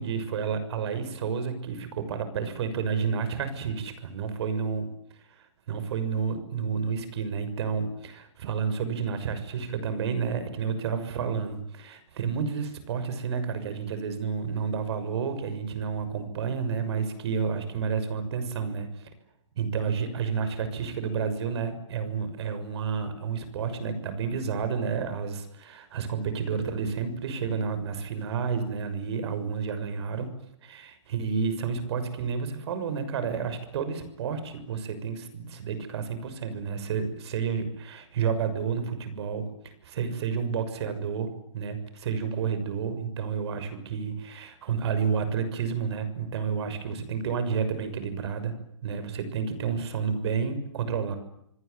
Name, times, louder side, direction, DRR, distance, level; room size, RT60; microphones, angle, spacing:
voice 1, 0.0-4.9 5.4-19.1 19.6-30.3 30.6-48.5 48.8-51.2, right 6 dB, 60° right, 11 dB, 6.4 m, -30 dB
27.5 x 21.0 x 9.5 m, 0.76 s
hypercardioid pair, 130°, 16 cm